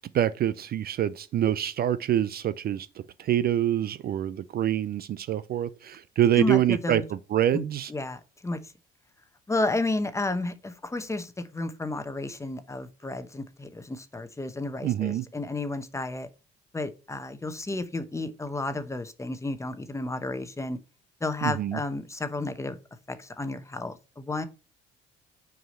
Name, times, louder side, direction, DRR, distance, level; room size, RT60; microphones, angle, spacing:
voice 1, 0.1-7.9 14.8-15.2 21.4-21.8, right 11 dB, 45° right, 0.4 m, -26 dB
voice 2, 6.3-7.0 7.5-7.6 7.9-8.7 9.5-16.3 16.7-20.8 21.2-22.8 23.1-24.5, left 2 dB, 15° left, 0.9 m, -32 dB
6.3 x 4.8 x 5.3 m
cardioid pair, 100°, 21 cm